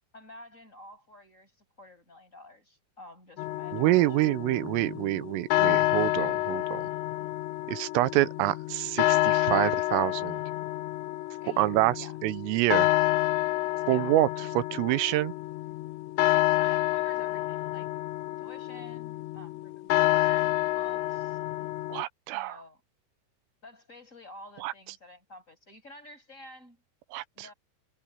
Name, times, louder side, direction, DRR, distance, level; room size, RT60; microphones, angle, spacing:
voice 1, 0.1-4.3 11.4-12.2 13.8-14.2 16.6-17.9 18.4-21.4 22.3-22.8 23.6-26.8 27.3-27.5, left 1 dB, 15° left, 6.6 m, -50 dB
sound 1, 3.4-22.0, left 17 dB, 80° left, 2.6 m, -28 dB
voice 2, 3.7-6.9 7.7-10.4 11.6-12.9 13.9-14.3 14.5-15.3 21.9-22.6 24.6-24.7 27.1-27.5, right 17 dB, 80° right, 3.4 m, -27 dB
omnidirectional pair, 6.0 m